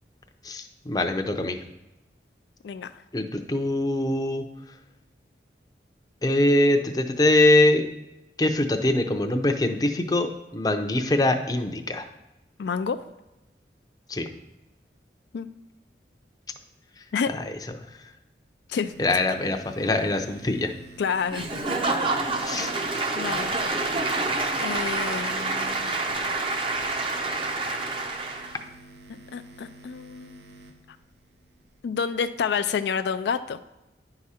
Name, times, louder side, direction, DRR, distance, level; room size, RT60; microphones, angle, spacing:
voice 1, 0.4-1.6 3.1-4.4 6.2-7.9 8.4-10.3 10.5-12.1 14.1-14.3 17.3-17.4 19.0-20.7 22.4-22.7, left 1 dB, 20° left, 4 dB, 0.6 m, -23 dB
voice 2, 12.6-13.0 15.3-15.5 17.1-17.3 18.7-18.9 21.0-21.5 22.2-22.8 23.2-23.5 24.6-26.0 29.1-30.4 31.8-33.6, left 6 dB, 75° left, 10 dB, 0.3 m, -29 dB
sound 1, 18.9-31.8, right 1 dB, 80° right, 0.9 m, -50 dB
Applause / Crowd, 21.3-28.6, right 3 dB, 30° right, 0.7 m, -27 dB
10.5 x 4.9 x 4.2 m, 0.98 s
head